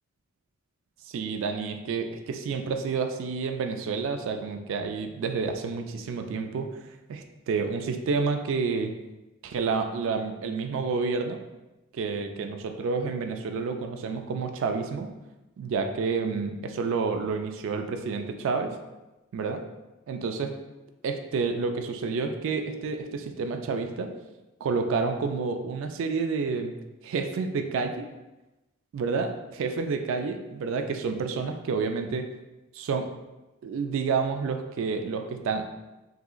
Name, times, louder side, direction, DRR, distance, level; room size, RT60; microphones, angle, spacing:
voice 1, 1.1-6.7 7.1-8.9 9.4-11.4 11.9-15.1 15.6-18.8 19.3-19.6 20.1-20.6 21.0-24.1 24.6-26.7 27.0-28.0 28.9-32.3 32.7-33.1 33.6-35.7, right 4 dB, 65° right, 6 dB, 0.3 m, -29 dB
3.5 x 2.9 x 2.3 m, 1.0 s
head